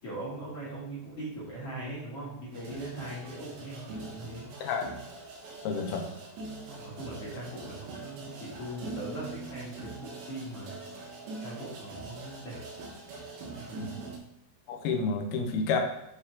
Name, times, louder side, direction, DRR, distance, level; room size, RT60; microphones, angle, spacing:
voice 1, 0.0-4.5 6.8-10.8 11.4-12.6 13.4-13.8, right 1 dB, 40° left, -8 dB, 2.8 m, -40 dB
sound 1, 2.5-14.2, right 3 dB, 80° right, 3.7 m, -43 dB
voice 2, 5.6-6.1 13.8-14.0 14.7-15.8, left 5 dB, 75° left, 3 dB, 2.4 m, -30 dB
8.8 x 4.1 x 4.8 m, 0.87 s
omnidirectional pair, 5.2 m